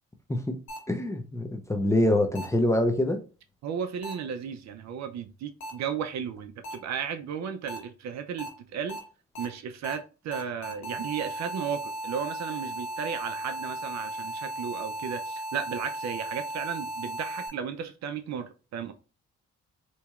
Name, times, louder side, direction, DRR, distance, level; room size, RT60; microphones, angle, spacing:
sound 1, 0.7-0.8 2.3-2.4 4.0-4.1 5.6-5.7 6.6-6.7 7.7-7.8 8.4-8.5 8.9-9.0 9.3-9.4 9.8-9.9 10.3-17.5, right 1 dB, 65° left, 1.4 m, -36 dB
voice 1, 0.9-3.2, left 1 dB, 10° left, 0.6 m, -25 dB
voice 2, 3.6-9.0 9.4-18.9, right 7 dB, 65° right, 0.6 m, -34 dB
4.2 x 3.0 x 2.4 m
cardioid pair, 90°, 30 cm